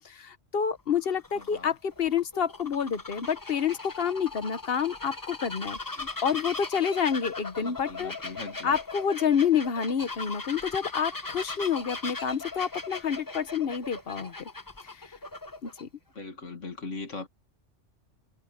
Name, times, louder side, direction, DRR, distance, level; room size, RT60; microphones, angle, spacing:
voice 1, 0.0-8.1 8.6-14.5 14.8-15.1 15.6-15.9, left 7 dB, 55° left, 1.2 m, -28 dB
Bird vocalization bird call bird song, 0.8-15.8, left 3 dB, 20° left, 0.9 m, -39 dB
voice 2, 1.3-1.7 7.6-8.8 16.1-17.3, left 3 dB, 80° left, 2.4 m, -40 dB
omnidirectional pair, 1.3 m